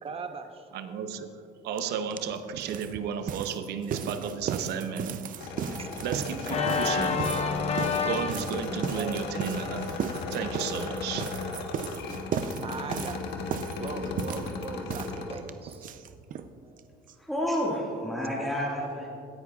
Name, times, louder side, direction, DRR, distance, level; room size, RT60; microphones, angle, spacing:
voice 1, 0.0-0.7 4.2-4.4 5.8-5.9 8.9-9.2 10.5-10.7 12.6-15.9 16.6-16.9, right 4 dB, 35° right, 6 dB, 0.9 m, -40 dB
voice 2, 0.7-5.1 6.0-7.2 8.0-9.9 10.3-11.3, right 7 dB, 80° right, 9 dB, 0.8 m, -34 dB
sound 1, 1.8-1.9 2.1-16.5 16.8-16.9 17.1-17.2 17.5-17.6, right 7 dB, 55° right, 0.5 m, -36 dB
sound 2, 5.4-15.4, left 4 dB, 80° left, 1.3 m, -36 dB
Organ, 6.4-11.3, left 5 dB, 40° left, 0.9 m, -31 dB
voice 3, 17.2-19.1, equal, ahead, -6 dB, 1.9 m, -30 dB
17.0 x 10.5 x 2.4 m, 2.5 s
cardioid pair, 110°, 17 cm